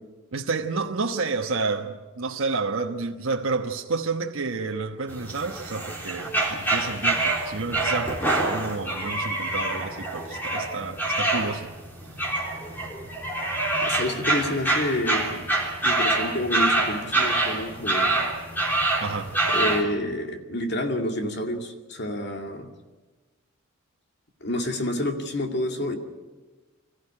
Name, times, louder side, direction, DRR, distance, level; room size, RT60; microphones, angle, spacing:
voice 1, 0.3-11.7 19.0-19.3, right 4 dB, 75° right, 1 dB, 1.2 m, -30 dB
sound 1, 5.1-19.8, right 2 dB, 10° left, 3.7 m, -26 dB
voice 2, 13.8-15.5 15.8-18.3 19.5-22.7 24.4-26.0, left 1 dB, 50° left, 4 dB, 2.3 m, -29 dB
25.0 x 15.0 x 9.9 m, 1.3 s
head